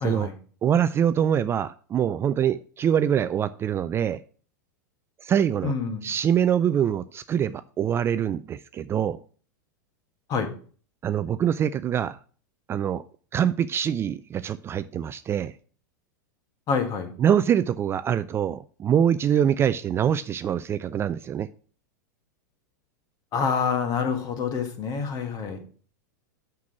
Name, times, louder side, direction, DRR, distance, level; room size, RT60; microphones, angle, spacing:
voice 1, 0.0-0.3 5.6-6.1 10.3-10.5 16.7-17.1 23.3-25.6, left 6 dB, 35° left, 6 dB, 1.9 m, -27 dB
voice 2, 0.6-4.2 5.2-5.7 6.0-9.2 11.0-12.2 12.7-13.0 13.3-15.5 17.2-21.5, right 9 dB, 25° right, 13 dB, 0.3 m, -24 dB
6.1 x 5.9 x 5.8 m, 0.42 s
hypercardioid pair, 110°, 10 cm